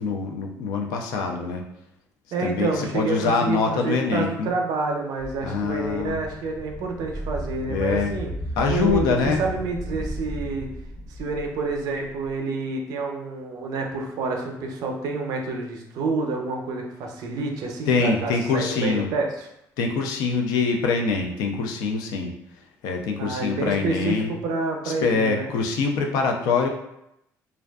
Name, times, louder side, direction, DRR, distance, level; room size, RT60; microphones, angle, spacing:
voice 1, 0.0-1.6 2.4-4.5 5.4-6.2 7.7-8.2 8.6-9.4 17.9-19.1 19.8-22.3 22.8-24.3 24.8-26.7, left 4 dB, 80° left, 3 dB, 0.4 m, -24 dB
voice 2, 2.3-8.3 8.7-10.7 11.1-19.5 23.2-25.5, right 3 dB, 70° right, 2 dB, 0.5 m, -28 dB
sound 1, 5.2-12.3, equal, 15° left, 0.7 m, -34 dB
2.5 x 2.2 x 2.2 m, 0.81 s
cardioid pair, 95°, 7 cm